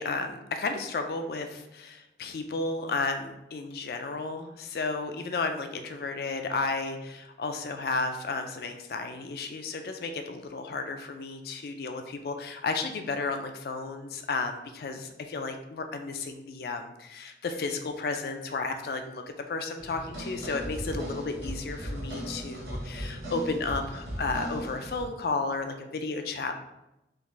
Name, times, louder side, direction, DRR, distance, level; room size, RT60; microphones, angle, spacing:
voice 1, 0.0-26.5, left 3 dB, 60° left, 6 dB, 0.3 m, -33 dB
sound 1, 19.8-25.0, equal, 80° right, 0.9 m, -37 dB
3.5 x 2.5 x 3.1 m, 0.90 s
head